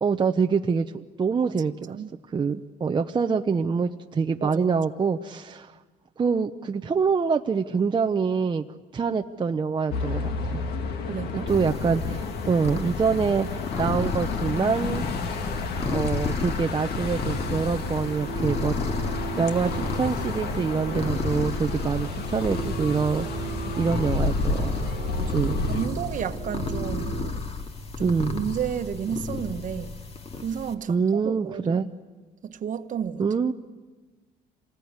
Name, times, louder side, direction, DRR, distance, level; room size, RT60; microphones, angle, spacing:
voice 1, 0.0-1.9 2.3-5.7 6.2-8.6 8.9-10.6 11.3-15.4 15.8-18.7 19.3-24.7 25.3-25.6 28.0-28.4 30.9-31.9 33.2-33.5, right 5 dB, 30° right, 5 dB, 0.8 m, -25 dB
sound 1, 9.9-25.9, left 4 dB, 70° left, 2.2 m, -31 dB
voice 2, 11.1-11.5 23.6-23.8 25.1-27.5 28.0-30.0 30.4-31.8 32.4-33.2, right 8 dB, 50° right, 9 dB, 1.3 m, -32 dB
sound 2, 11.5-30.7, left 3 dB, 35° left, 2.1 m, -32 dB
sound 3, 17.3-27.3, right 10 dB, 70° right, 1.2 m, -38 dB
27.0 x 20.0 x 9.6 m, 1.4 s
cardioid pair, 110°, 17 cm